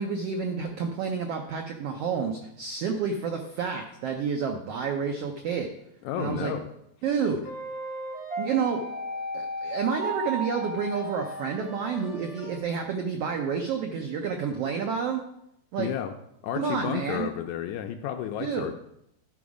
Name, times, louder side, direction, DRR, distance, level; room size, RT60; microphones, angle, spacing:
voice 1, 0.0-5.7 6.2-6.5 7.0-7.4 8.4-8.8 9.3-15.2 15.7-15.9 16.6-17.3 18.4-18.7, right 6 dB, 85° right, 3 dB, 1.3 m, -29 dB
voice 2, 6.1-6.7 15.8-16.1 16.4-18.7, left 10 dB, 80° left, 6 dB, 1.7 m, -31 dB
sound 1, 7.4-12.6, right 1 dB, 30° right, 0.6 m, -35 dB
11.0 x 5.1 x 4.8 m, 0.78 s
omnidirectional pair, 3.7 m